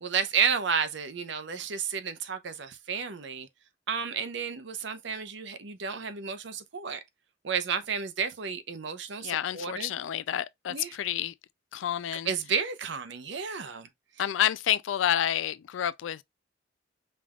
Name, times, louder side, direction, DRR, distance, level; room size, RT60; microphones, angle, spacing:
voice 1, 0.0-3.5 3.9-7.0 7.4-9.9 10.7-10.9 12.3-13.9, right 6 dB, 70° right, 0.7 m, -31 dB
voice 2, 9.2-11.3 11.7-12.3 14.2-16.2, left 10 dB, 80° left, 0.3 m, -29 dB
5.3 x 3.4 x 2.3 m
head